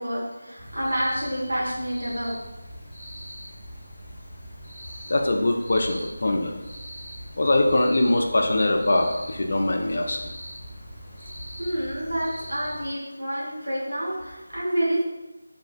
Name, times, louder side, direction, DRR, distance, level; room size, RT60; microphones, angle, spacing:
voice 1, 0.0-2.4 11.6-15.0, right 1 dB, 75° right, -6 dB, 1.1 m, -28 dB
sound 1, 0.6-12.9, equal, 5° right, 0.6 m, -41 dB
voice 2, 5.1-6.5 7.4-10.2, left 1 dB, 50° left, 3 dB, 0.3 m, -22 dB
2.9 x 2.4 x 2.3 m, 1.1 s
figure-of-eight pair, 165°, 0 cm